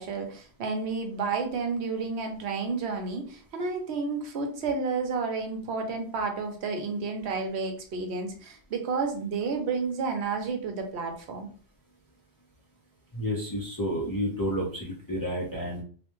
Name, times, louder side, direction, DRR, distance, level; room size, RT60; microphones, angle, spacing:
voice 1, 0.0-11.5, right 4 dB, 80° right, 4 dB, 0.9 m, -31 dB
voice 2, 13.1-15.8, equal, 30° left, -4 dB, 0.4 m, -30 dB
2.4 x 2.1 x 3.0 m, 0.43 s
omnidirectional pair, 1.1 m